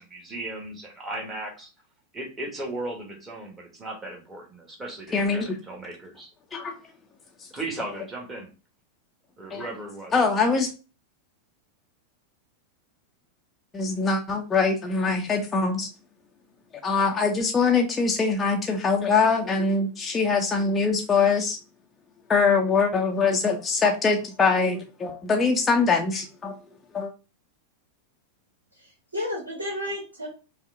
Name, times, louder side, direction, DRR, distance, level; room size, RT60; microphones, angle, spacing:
voice 1, 0.0-1.7 2.1-6.3 7.5-8.5 9.4-10.1, right 2 dB, 15° right, 1 dB, 1.6 m, -36 dB
voice 2, 5.1-5.6 6.5-6.7 7.4-7.5 9.5-9.7 10.1-10.7 13.7-15.9 16.8-21.6 22.3-26.6 26.9-27.1, left 4 dB, 15° left, 1 dB, 0.6 m, -23 dB
voice 3, 28.7-30.3, left 1 dB, 75° right, 0 dB, 1.4 m, -32 dB
5.4 x 2.5 x 3.7 m, 0.33 s
figure-of-eight pair, 90°, 0 cm